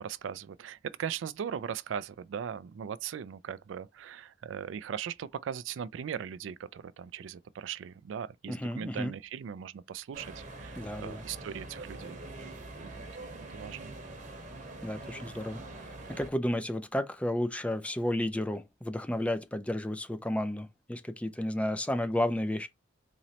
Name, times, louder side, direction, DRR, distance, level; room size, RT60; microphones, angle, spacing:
voice 1, 0.0-12.2 12.8-13.0 13.5-13.9, right 8 dB, 75° right, 0.3 m, -39 dB
voice 2, 8.5-9.1 10.8-11.2 14.8-15.9 16.2-22.7, left 1 dB, 5° left, 0.4 m, -32 dB
sound 1, 10.1-16.3, right 2 dB, 40° right, 0.9 m, -44 dB
3.9 x 3.0 x 2.8 m
head